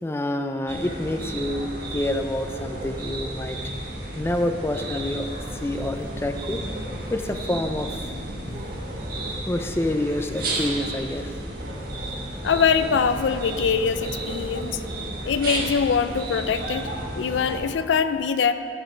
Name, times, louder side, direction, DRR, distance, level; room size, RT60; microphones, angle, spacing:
voice 1, 0.0-3.6 4.2-5.3 5.6-6.6 7.1-8.1 9.5-11.3, left 1 dB, 15° left, 6 dB, 0.4 m, -27 dB
sound 1, 0.7-17.6, right 1 dB, 55° right, 1.4 m, -33 dB
sound 2, 5.1-11.7, right 1 dB, 80° right, 1.2 m, -47 dB
sound 3, 5.4-7.4 7.9-8.1 8.5-16.0 16.5-16.6, right 1 dB, 30° right, 0.6 m, -46 dB
voice 2, 12.4-14.8 15.3-16.9 17.1-18.5, left 6 dB, 80° left, 11 dB, 0.4 m, -23 dB
12.0 x 5.0 x 5.9 m, 2.7 s
head